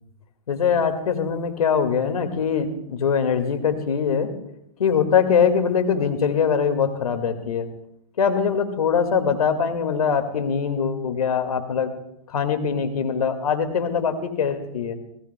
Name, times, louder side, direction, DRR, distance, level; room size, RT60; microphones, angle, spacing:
voice 1, 0.5-4.3 4.8-7.7 8.2-11.9 12.3-15.0, left 6 dB, 85° left, 7 dB, 2.0 m, -22 dB
25.5 x 18.0 x 2.2 m, 0.79 s
hypercardioid pair, 120°, 18 cm